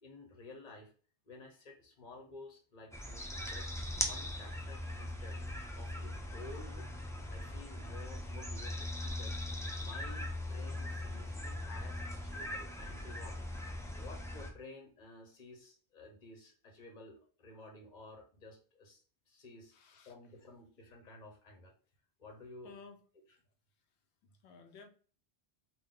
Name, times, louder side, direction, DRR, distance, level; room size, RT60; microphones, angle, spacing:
voice 1, 0.0-0.9 1.3-3.7 4.0-5.4 5.7-9.4 9.8-19.7 20.0-21.7 22.2-22.7, left 2 dB, 45° left, 0.9 m, -53 dB
sound 1, 2.9-14.5, left 1 dB, 5° left, 0.3 m, -40 dB
voice 2, 19.7-20.1 22.6-23.0 24.2-24.9, left 5 dB, 85° left, 0.9 m, -55 dB
3.7 x 2.2 x 3.7 m
omnidirectional pair, 1.1 m